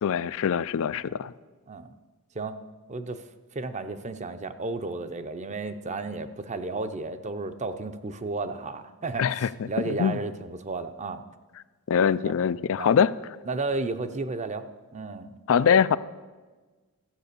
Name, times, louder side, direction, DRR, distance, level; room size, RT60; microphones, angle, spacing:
voice 1, 0.0-1.3 9.2-9.7 10.0-10.2 11.9-13.1 15.5-16.0, left 7 dB, 65° left, 16 dB, 0.4 m, -23 dB
voice 2, 2.9-3.2 3.5-11.2 12.2-12.3 12.8-12.9 13.4-14.7 14.9-15.3 15.9-16.0, right 3 dB, 30° right, 10 dB, 0.6 m, -33 dB
14.0 x 7.9 x 6.7 m, 1.3 s
head